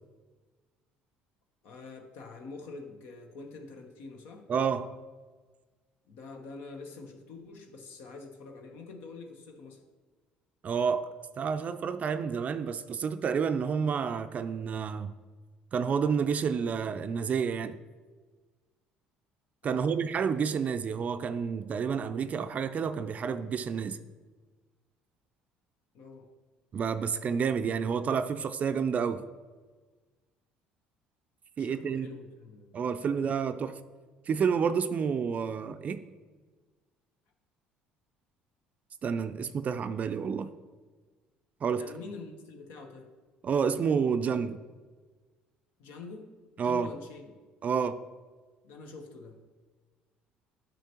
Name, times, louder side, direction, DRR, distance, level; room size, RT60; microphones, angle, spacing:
voice 1, 1.6-4.5 6.0-9.8 19.6-20.0 25.9-26.3 31.6-33.3 41.8-43.1 45.8-46.3 46.6-47.3 48.6-49.4, left 3 dB, 70° left, 0.9 m, -46 dB
voice 2, 4.5-4.9 10.6-11.1 11.4-15.1 15.7-17.7 19.6-24.0 26.7-29.3 31.6-32.1 32.7-33.8 34.3-36.1 39.0-40.5 41.6-41.9 43.4-44.6 46.6-46.9 47.6-48.0, right 6 dB, 45° right, 0.4 m, -29 dB
9.0 x 5.6 x 2.9 m
supercardioid pair, 75°, 4 cm